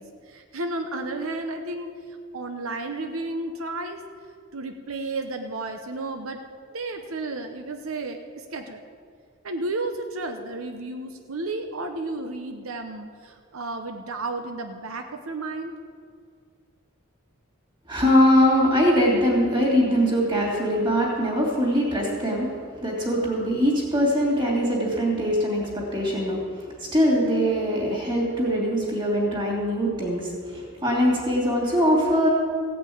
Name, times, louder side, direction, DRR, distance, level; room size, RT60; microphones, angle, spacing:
voice 1, 0.0-1.9 2.3-4.0 4.5-6.4 6.7-8.8 9.4-15.7, right 2 dB, 85° right, 5 dB, 0.9 m, -32 dB
voice 2, 17.9-22.5 22.8-32.3, equal, 20° right, -3 dB, 2.9 m, -22 dB
15.5 x 6.1 x 8.6 m, 2.1 s
head